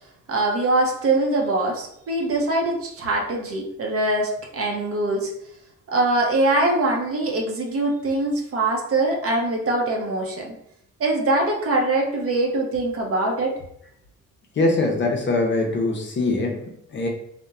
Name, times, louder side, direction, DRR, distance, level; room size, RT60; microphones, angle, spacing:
voice 1, 0.3-5.3 5.9-10.5 11.0-13.6, right 2 dB, 50° right, 0 dB, 0.7 m, -23 dB
voice 2, 14.6-17.1, left 2 dB, 40° left, 1 dB, 0.6 m, -23 dB
2.8 x 2.1 x 2.3 m, 0.74 s
cardioid pair, 90°, 30 cm